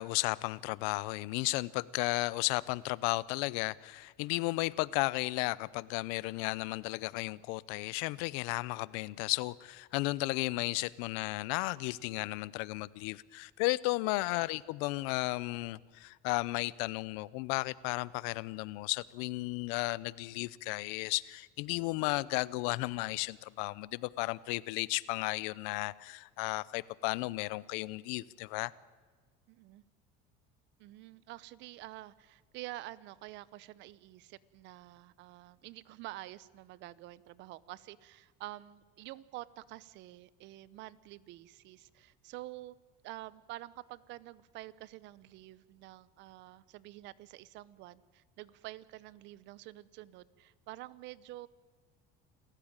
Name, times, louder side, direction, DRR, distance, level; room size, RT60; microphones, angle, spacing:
voice 1, 0.0-28.7, left 22 dB, 85° left, 0.7 m, -34 dB
voice 2, 29.5-29.8 30.8-42.8 43.0-51.5, right 17 dB, 65° right, 0.9 m, -48 dB
27.5 x 15.0 x 8.9 m
cardioid pair, 120°, 20 cm